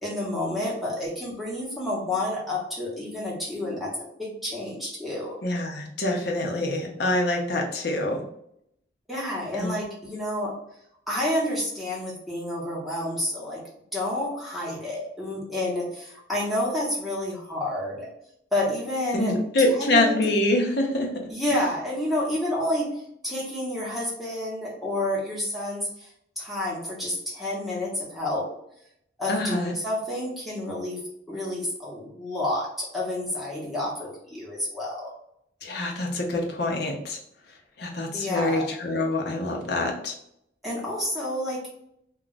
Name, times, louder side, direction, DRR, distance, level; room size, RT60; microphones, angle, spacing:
voice 1, 0.0-5.4 9.1-10.5 11.1-13.6 13.9-18.1 18.5-19.3 19.7-20.2 21.3-22.9 23.2-26.1 26.4-28.5 29.2-31.0 31.3-35.1 38.1-38.7 40.6-41.6, left 1 dB, ahead, -5 dB, 0.9 m, -29 dB
voice 2, 5.4-8.2 9.6-9.7 19.1-21.1 21.5-21.6 29.3-29.7 35.6-37.2 37.8-40.1, left 2 dB, 55° left, 1 dB, 0.6 m, -25 dB
2.3 x 2.2 x 3.8 m, 0.74 s
head